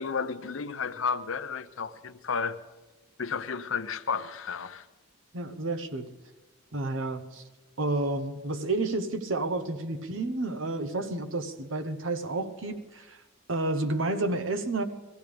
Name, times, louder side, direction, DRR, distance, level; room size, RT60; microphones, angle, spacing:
voice 1, 0.0-2.6 3.2-4.9, left 5 dB, 70° left, 0.7 m, -32 dB
voice 2, 5.3-6.1 6.7-7.4 7.8-13.2 13.5-14.8, right 2 dB, 65° right, 0.9 m, -30 dB
21.5 x 15.0 x 3.4 m
head